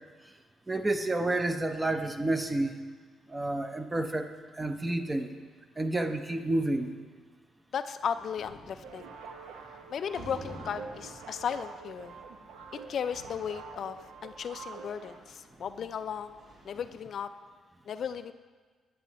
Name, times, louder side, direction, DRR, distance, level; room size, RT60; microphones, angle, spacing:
voice 1, 0.7-2.7 3.3-5.3 5.8-6.9, right 2 dB, 20° right, 7 dB, 0.6 m, -30 dB
voice 2, 7.7-9.1 9.9-12.2 12.9-14.0 14.2-16.4 16.6-17.3 17.9-18.3, left 7 dB, 60° left, 11 dB, 0.3 m, -35 dB
sound 1, 8.0-17.1, right 2 dB, 55° right, 2.4 m, -52 dB
sound 2, 8.8-15.2, right 5 dB, 90° right, 0.6 m, -46 dB
9.0 x 7.6 x 4.0 m, 1.5 s
cardioid pair, 90°, 0 cm